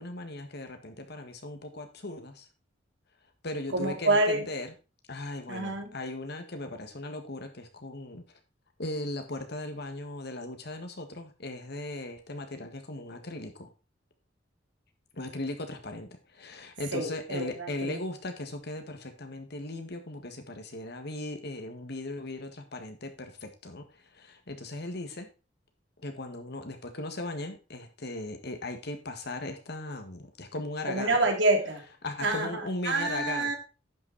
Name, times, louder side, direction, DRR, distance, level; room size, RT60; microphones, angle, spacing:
voice 1, 0.0-2.5 3.4-4.7 5.1-8.2 8.8-13.7 15.1-25.3 26.0-31.2 32.0-33.5, left 2 dB, 60° left, 7 dB, 1.7 m, -38 dB
voice 2, 3.7-4.4 5.5-5.9 16.9-18.0 30.9-31.8 32.2-33.6, right 2 dB, 75° right, 3 dB, 2.7 m, -27 dB
10.5 x 6.0 x 4.2 m, 0.31 s
head